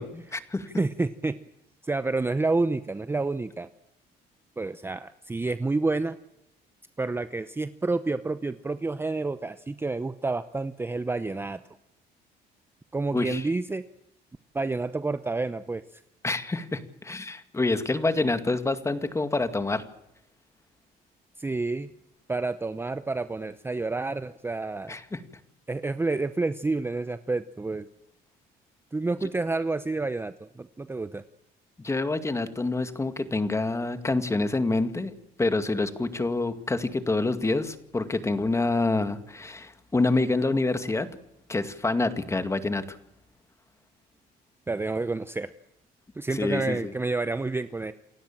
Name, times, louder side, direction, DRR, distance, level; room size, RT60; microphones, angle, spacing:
voice 1, 0.0-0.7 13.1-13.4 16.2-19.8 24.9-25.2 31.8-35.1 35.4-41.1 41.5-43.0 46.3-46.9, left 3 dB, 15° left, 9 dB, 2.1 m, -27 dB
voice 2, 0.8-1.4 1.8-3.7 4.6-6.2 7.0-11.6 12.9-13.8 14.5-16.0 21.4-21.9 22.3-25.0 25.7-27.9 28.9-31.2 44.7-45.5 46.1-47.9, right 3 dB, 15° right, 12 dB, 0.8 m, -29 dB
28.5 x 16.0 x 7.5 m, 0.85 s
cardioid pair, 110°, 17 cm